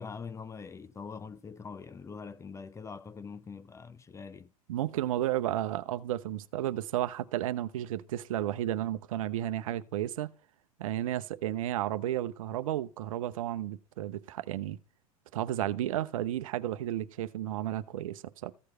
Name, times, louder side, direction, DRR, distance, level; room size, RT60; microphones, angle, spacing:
voice 1, 0.0-4.5, left 5 dB, 15° left, 0.6 m, -43 dB
voice 2, 4.7-10.3 10.8-14.8 15.3-18.5, right 12 dB, 65° right, 0.8 m, -32 dB
14.5 x 6.5 x 4.4 m
figure-of-eight pair, 85°, 19 cm